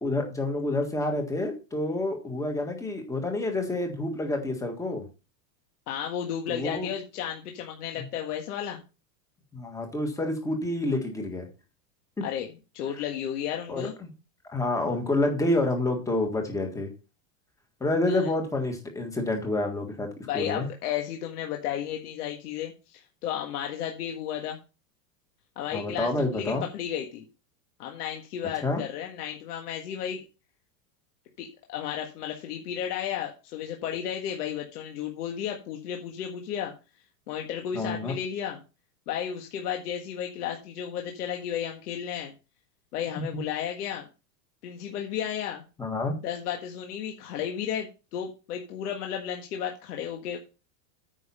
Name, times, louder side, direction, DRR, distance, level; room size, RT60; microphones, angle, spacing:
voice 1, 0.0-5.1 6.5-6.9 9.5-11.5 12.2-12.3 13.7-14.1 14.5-16.9 17.8-20.1 20.3-20.7 25.7-26.6 28.6-28.8 37.7-38.1 43.1-43.2 45.8-46.2, left 2 dB, 5° left, 4 dB, 1.6 m, -28 dB
voice 2, 5.9-8.8 12.2-12.5 12.7-13.9 18.1-18.3 20.3-24.6 25.6-27.2 27.8-30.3 31.4-36.7 37.3-38.6 39.1-42.3 42.9-44.1 44.6-45.6 46.2-50.4, left 9 dB, 65° left, 2 dB, 1.8 m, -33 dB
9.3 x 5.6 x 5.5 m, 0.31 s
supercardioid pair, 165°, 50 cm